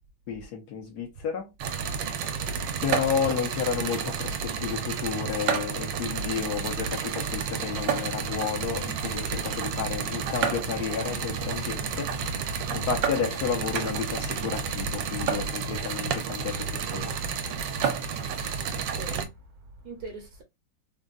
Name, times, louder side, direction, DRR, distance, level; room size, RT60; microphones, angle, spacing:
voice 1, 0.3-1.5 2.8-12.1 12.7-17.1, left 7 dB, 65° left, 1.2 m, -31 dB
sound 1, 1.6-19.2, right 6 dB, 75° right, 1.3 m, -30 dB
voice 2, 2.4-2.8 18.7-20.4, right 3 dB, 60° right, 1.2 m, -43 dB
sound 2, 8.5-15.3, left 2 dB, 85° left, 1.5 m, -43 dB
3.6 x 2.1 x 2.4 m
omnidirectional pair, 2.1 m